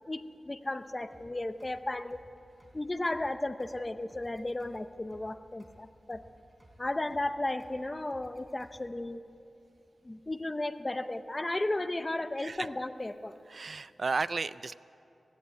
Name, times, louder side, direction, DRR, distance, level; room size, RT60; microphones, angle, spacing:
voice 1, 0.1-2.2 2.7-6.2 6.8-9.2 10.0-13.4, left 2 dB, 20° left, 11 dB, 0.7 m, -34 dB
sound 1, 1.1-9.1, right 1 dB, 20° right, 3.5 m, -60 dB
voice 2, 13.5-14.7, right 4 dB, 50° right, 16 dB, 0.4 m, -33 dB
17.0 x 16.5 x 9.4 m, 2.8 s
wide cardioid pair, 110°, 0 cm